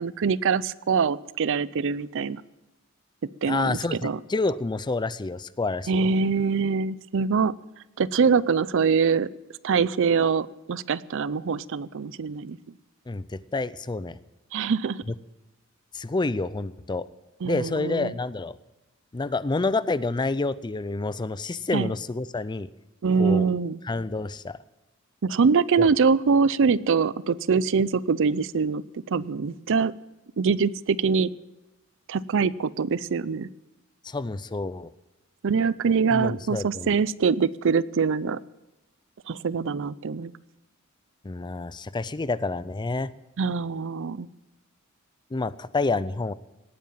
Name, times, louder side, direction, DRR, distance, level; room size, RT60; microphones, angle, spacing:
voice 1, 0.0-2.4 3.4-4.2 5.9-7.5 8.0-9.3 9.6-12.6 14.5-15.0 17.4-18.1 21.7-21.9 23.0-23.8 25.2-28.8 29.1-29.9 30.4-31.3 32.1-33.5 35.4-38.4 39.3-40.3 43.4-44.3, right 5 dB, 65° right, 19 dB, 0.5 m, -24 dB
voice 2, 3.4-6.1 13.1-14.2 15.9-17.1 17.4-18.6 19.1-22.7 23.2-23.5 23.8-24.6 25.8-25.9 34.0-34.9 36.1-37.0 41.2-43.1 45.3-46.3, left 3 dB, 20° left, 17 dB, 0.4 m, -28 dB
18.0 x 9.4 x 7.4 m, 1.0 s
head